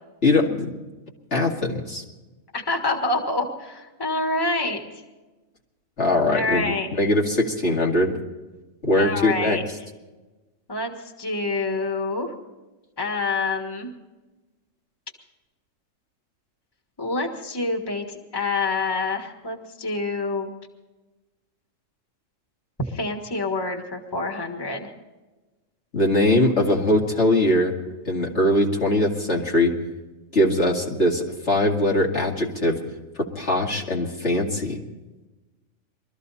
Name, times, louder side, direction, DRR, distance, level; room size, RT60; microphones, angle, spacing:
voice 1, 0.2-0.7 1.3-2.0 6.0-8.1 8.8-9.6 25.9-27.8 28.1-29.7 30.3-32.8 33.2-34.8, left 1 dB, 60° left, -1 dB, 2.4 m, -21 dB
voice 2, 2.5-4.8 6.3-6.9 8.9-9.6 10.7-12.3 13.0-13.9 17.0-20.5 22.9-24.9, left 3 dB, 20° left, 4 dB, 1.6 m, -27 dB
22.0 x 14.0 x 4.1 m, 1.1 s
omnidirectional pair, 1.3 m